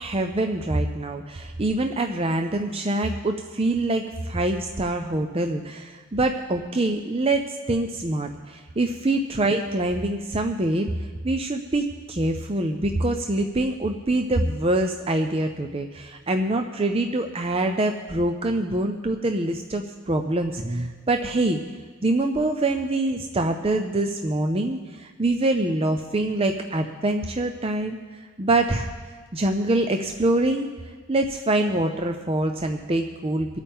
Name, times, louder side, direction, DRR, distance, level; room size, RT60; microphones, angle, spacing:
voice 1, 0.0-10.9 11.2-21.6 22.0-28.9 29.3-30.7 31.1-33.5, right 2 dB, 25° right, 5 dB, 0.5 m, -25 dB
24.5 x 8.7 x 3.6 m, 1.5 s
head